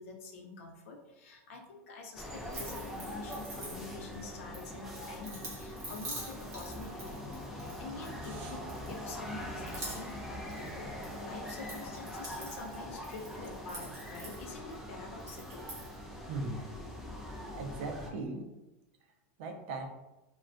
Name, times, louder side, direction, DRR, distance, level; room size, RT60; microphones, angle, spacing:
voice 1, 0.0-15.6, left 3 dB, 75° left, 2 dB, 0.6 m, -47 dB
sound 1, 2.2-18.1, left 1 dB, ahead, 0.3 m, -43 dB
sound 2, 2.5-4.1 4.5-8.4 8.7-9.3 9.6-11.2 11.5-14.8 15.2-15.9, right 2 dB, 40° right, 1.0 m, -46 dB
voice 2, 8.2-8.6 16.3-16.6 17.6-18.5 19.4-19.9, right 3 dB, 60° right, 3 dB, 0.5 m, -39 dB
2.4 x 2.2 x 2.4 m, 1.0 s
supercardioid pair, 155°, 7 cm